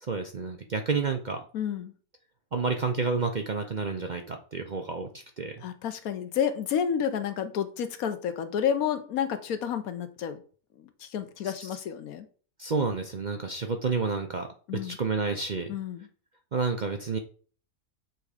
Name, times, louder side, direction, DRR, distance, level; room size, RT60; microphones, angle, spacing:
voice 1, 0.0-1.4 2.5-5.5 11.4-11.5 12.6-14.5 14.7-15.7 16.5-17.2, right 4 dB, 50° right, 4 dB, 0.6 m, -30 dB
voice 2, 1.5-1.9 5.6-10.4 10.8-12.3 14.7-15.0 15.7-16.1, left 8 dB, 80° left, 9 dB, 1.2 m, -30 dB
7.3 x 3.5 x 4.9 m, 0.42 s
omnidirectional pair, 1.5 m